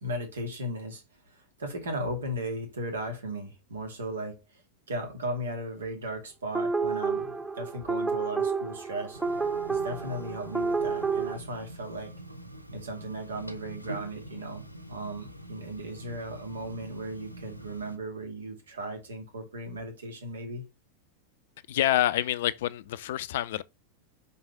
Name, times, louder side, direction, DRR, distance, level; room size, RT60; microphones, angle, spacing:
voice 1, 0.0-4.6 4.9-9.2 9.7-12.1 12.7-14.6 14.9-20.6, right 1 dB, 70° right, 2.5 m, -36 dB
sound 1, 6.5-11.4, right 4 dB, 10° right, 0.7 m, -30 dB
sound 2, 9.1-18.0, right 1 dB, 90° left, 0.8 m, -44 dB
voice 2, 21.7-23.6, left 13 dB, 55° left, 0.5 m, -27 dB
5.4 x 4.8 x 5.3 m
figure-of-eight pair, 90°, 0 cm